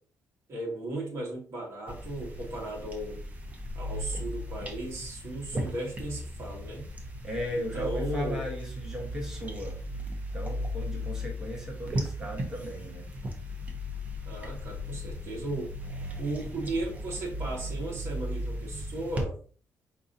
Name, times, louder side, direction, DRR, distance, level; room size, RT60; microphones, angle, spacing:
voice 1, 0.5-3.2 3.7-6.9 7.5-8.4 14.2-15.7 16.2-19.4, right 2 dB, 50° right, -2 dB, 1.5 m, -36 dB
sound 1, 1.9-19.2, equal, 25° right, 0.7 m, -36 dB
voice 2, 7.2-9.8 10.3-13.0, equal, 10° right, -2 dB, 1.1 m, -36 dB
4.6 x 2.7 x 2.6 m, 0.41 s
cardioid pair, 145°, 6 cm